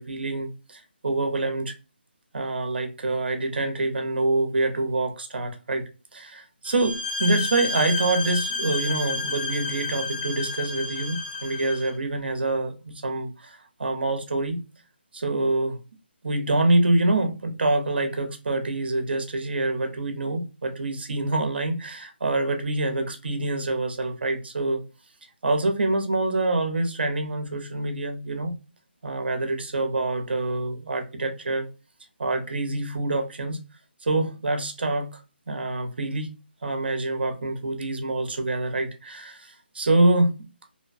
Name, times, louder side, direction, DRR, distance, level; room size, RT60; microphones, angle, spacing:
voice 1, 0.0-1.7 2.3-5.8 6.1-14.6 15.1-15.8 16.2-24.8 25.4-28.6 29.0-31.7 32.2-33.6 34.0-35.2 35.5-36.3 36.6-40.4, right 2 dB, 65° right, 0.8 m, -26 dB
sound 1, 6.7-11.9, left 3 dB, 55° left, 0.8 m, -30 dB
2.7 x 2.1 x 2.5 m
hypercardioid pair, 175°, 6 cm